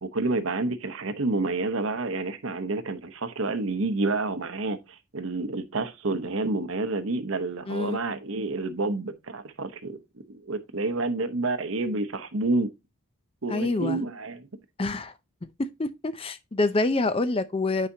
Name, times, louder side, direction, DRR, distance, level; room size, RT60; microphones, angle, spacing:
voice 1, 0.0-10.0 10.3-12.7 13.4-14.5, right 3 dB, 70° right, 0.9 m, -29 dB
voice 2, 7.7-8.0 13.5-14.0 14.8-15.1 15.6-17.9, left 2 dB, 25° left, 0.4 m, -26 dB
9.8 x 5.0 x 2.7 m
head